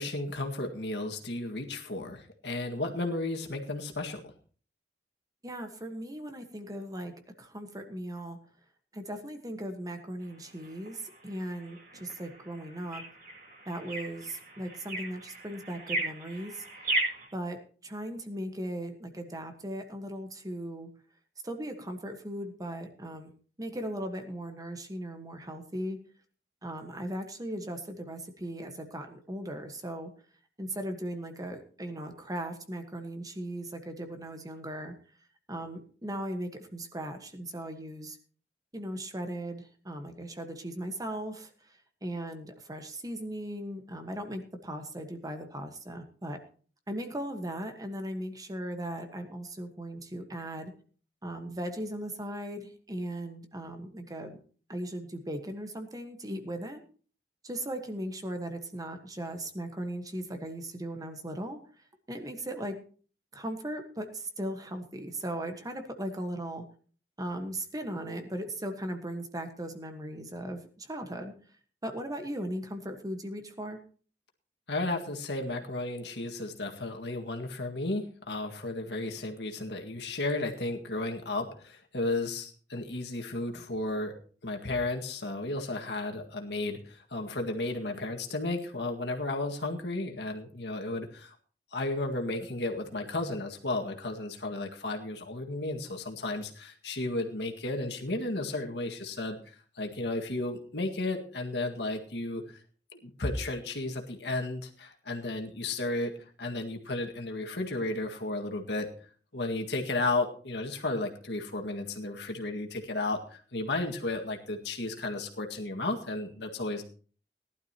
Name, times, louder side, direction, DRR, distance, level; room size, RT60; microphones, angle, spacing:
voice 1, 0.0-4.2 74.7-84.1 84.4-91.3 91.7-102.4 102.9-106.1 106.4-108.9 109.3-116.8, left 2 dB, 70° left, 3 dB, 1.9 m, -33 dB
voice 2, 5.4-7.1 7.4-8.4 8.9-13.0 13.7-16.6 17.3-20.9 21.4-23.3 23.6-26.0 26.6-30.1 30.6-34.9 35.5-38.2 38.7-46.4 46.9-50.7 51.2-54.4 54.7-56.8 57.4-61.6 62.1-62.8 63.3-66.6 67.2-71.3 71.8-73.8, right 1 dB, 20° right, 6 dB, 1.4 m, -38 dB
sound 1, 10.2-17.3, right 1 dB, 60° right, 7.6 m, -37 dB
18.5 x 12.0 x 2.9 m, 0.41 s
head